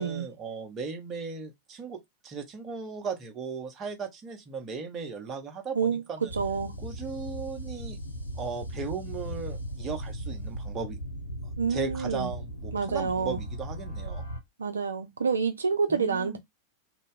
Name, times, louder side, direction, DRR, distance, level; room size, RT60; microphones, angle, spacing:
voice 1, 0.0-6.3 6.8-8.0 8.4-11.0 11.7-14.2 15.9-16.4, right 5 dB, 25° right, 0.8 m, -37 dB
sound 1, 6.3-14.4, right 1 dB, 85° left, 0.6 m, -37 dB
voice 2, 6.3-6.8 11.6-12.3 12.7-13.4 14.6-16.4, right 5 dB, 75° right, 0.3 m, -28 dB
2.6 x 2.2 x 3.7 m
figure-of-eight pair, 90°, 0 cm